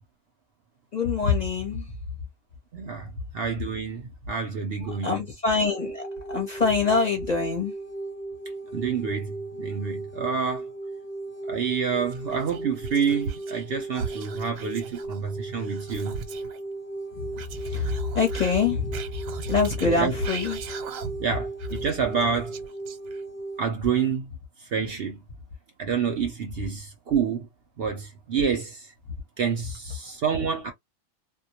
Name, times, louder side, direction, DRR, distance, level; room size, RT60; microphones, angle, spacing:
voice 1, 0.9-2.0 4.8-7.7 17.3-18.9 19.4-20.7, left 4 dB, 40° left, 0.7 m, -25 dB
voice 2, 2.7-5.1 8.7-10.6 11.5-16.2 19.8-20.1 21.2-22.6 23.6-24.3 24.6-25.2 25.8-27.5 27.8-28.9 29.4-30.7, right 6 dB, 60° right, 0.7 m, -28 dB
sound 1, 5.6-23.7, right 2 dB, 5° right, 0.7 m, -36 dB
Whispering, 12.1-13.7 13.9-16.6 17.3-21.3 21.6-23.4, right 6 dB, 85° right, 1.0 m, -39 dB
2.2 x 2.1 x 2.7 m
omnidirectional pair, 1.4 m